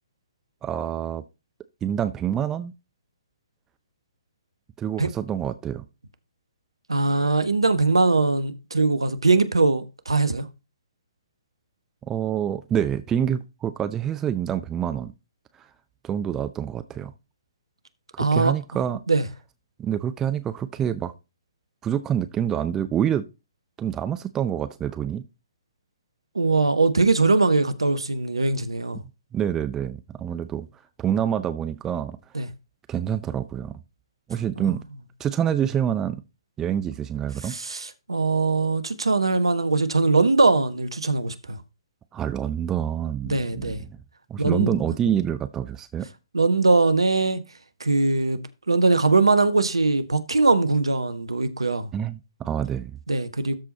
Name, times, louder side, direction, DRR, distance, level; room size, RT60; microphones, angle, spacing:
voice 1, 0.6-1.2 1.8-2.7 4.8-5.8 12.1-15.1 16.0-17.1 18.1-19.0 19.8-21.1 21.8-23.2 23.8-25.2 29.3-30.7 31.0-32.2 32.9-33.7 34.3-34.8 35.2-36.2 36.6-37.5 42.1-43.9 44.3-46.1 51.9-53.0, right 9 dB, 15° right, 0.6 m, -27 dB
voice 2, 6.9-10.5 18.2-18.5 19.1-19.2 26.3-29.0 32.3-32.5 34.6-34.8 37.4-41.6 43.3-43.8 44.4-44.8 46.3-47.4 47.8-48.4 48.7-51.9 53.1-53.6, right 3 dB, 75° right, 1.2 m, -21 dB
13.0 x 4.6 x 4.2 m
figure-of-eight pair, 125°, 3 cm